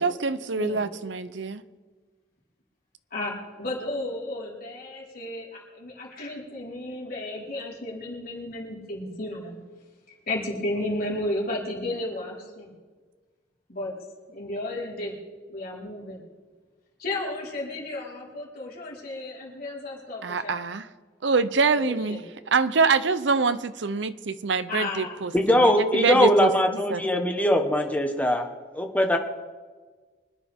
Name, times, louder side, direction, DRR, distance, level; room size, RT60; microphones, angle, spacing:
voice 1, 0.0-1.6 20.2-20.9 21.2-22.2 22.5-26.5 26.9-27.3, right 4 dB, 70° right, 13 dB, 0.7 m, -25 dB
voice 2, 0.5-0.9 3.1-9.6 10.3-12.7 13.7-13.9 14.3-15.1 15.5-16.2 17.0-20.6 21.7-22.2 24.7-25.2, left 1 dB, 55° left, -4 dB, 4.6 m, -33 dB
voice 3, 25.3-28.5 28.7-29.2, equal, 10° left, 4 dB, 1.4 m, -21 dB
25.0 x 10.0 x 3.7 m, 1.4 s
head